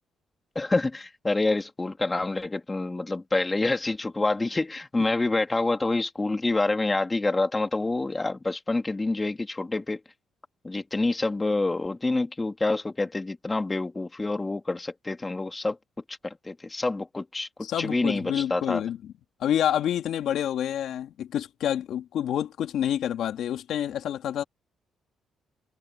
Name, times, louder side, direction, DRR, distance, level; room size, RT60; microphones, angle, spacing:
voice 1, 0.5-10.0 10.6-15.8 16.1-18.8, left 2 dB, 20° left, 3.0 m, -27 dB
voice 2, 17.6-19.0 19.4-24.4, left 10 dB, 75° left, 2.7 m, -28 dB
cardioid pair, 90°, 0 cm